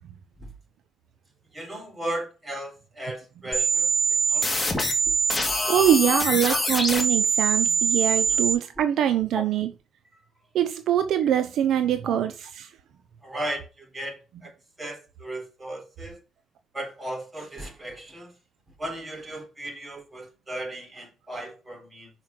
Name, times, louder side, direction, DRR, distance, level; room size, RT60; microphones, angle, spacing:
voice 1, 1.5-3.9 4.3-4.8 5.1-5.2 5.5-5.6 6.1-6.6 8.3-8.4 9.3-9.4 12.1-12.2 13.2-14.5 14.8-16.2 16.7-18.3 18.8-22.1, right 1 dB, 20° right, 3.8 m, -36 dB
sound 1, 3.5-8.5, right 3 dB, 15° left, 2.3 m, -23 dB
voice 2, 5.7-9.7 10.5-12.7, right 10 dB, 75° right, 0.7 m, -23 dB
6.2 x 4.8 x 5.9 m
cardioid pair, 90°, 0 cm